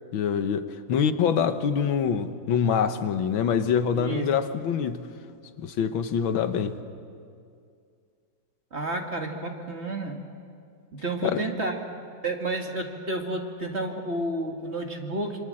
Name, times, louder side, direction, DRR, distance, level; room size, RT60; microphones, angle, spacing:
voice 1, 0.1-5.1 5.6-6.8 11.2-11.4, left 7 dB, 80° left, 10 dB, 1.8 m, -25 dB
voice 2, 3.9-4.3 8.7-10.2 10.9-11.8 12.2-15.4, right 2 dB, 35° right, 2 dB, 2.2 m, -31 dB
27.0 x 25.0 x 7.7 m, 2.3 s
omnidirectional pair, 2.1 m